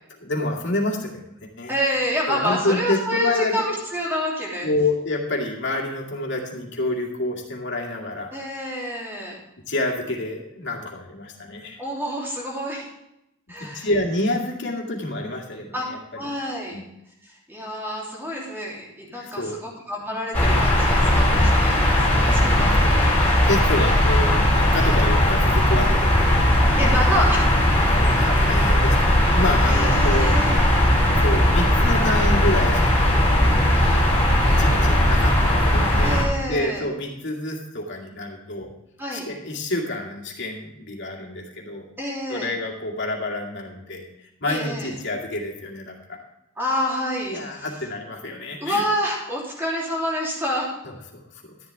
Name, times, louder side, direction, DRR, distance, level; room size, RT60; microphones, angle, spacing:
voice 1, 0.2-1.1 1.4-1.7 2.3-3.6 4.6-8.4 9.7-11.8 13.6-16.0 16.7-16.8 19.2-19.6 21.9-23.0 23.4-26.3 28.0-28.9 29.3-30.3 31.2-33.2 34.3-38.7 39.1-41.8 42.3-44.1 44.4-46.2 47.3-48.8 51.1-51.2 51.5-51.6, left 1 dB, 55° left, -1 dB, 2.3 m, -28 dB
voice 2, 1.7-4.7 8.3-9.4 11.8-12.9 13.5-13.9 15.7-15.8 16.1-16.8 17.2-23.5 24.8-25.0 26.8-27.5 29.6-30.6 36.0-36.8 39.0-39.3 42.0-42.5 44.5-44.9 46.6-47.7 48.6-50.7, equal, 10° right, -4 dB, 3.1 m, -28 dB
sound 1, 20.3-36.2, left 1 dB, 10° left, 3.7 m, -18 dB
13.0 x 11.0 x 3.5 m, 0.84 s
head